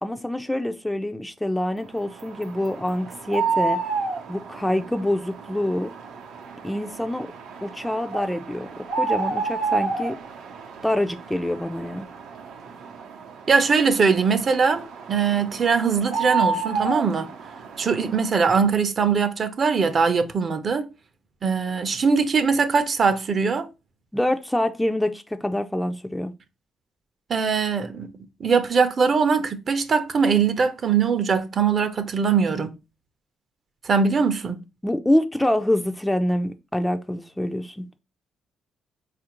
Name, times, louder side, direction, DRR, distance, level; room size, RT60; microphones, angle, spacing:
voice 1, 0.0-3.8 4.3-5.9 6.6-7.3 7.6-10.2 10.8-12.1 24.1-26.3 34.8-37.8, left 1 dB, 5° left, 0.3 m, -25 dB
sound 1, 2.0-18.3, right 4 dB, 85° right, 0.6 m, -31 dB
voice 2, 13.5-17.3 17.8-20.9 21.4-23.7 27.3-28.1 28.4-32.7 33.8-34.6, right 5 dB, 45° right, 0.5 m, -21 dB
4.2 x 2.5 x 2.9 m
cardioid pair, 90°, 0 cm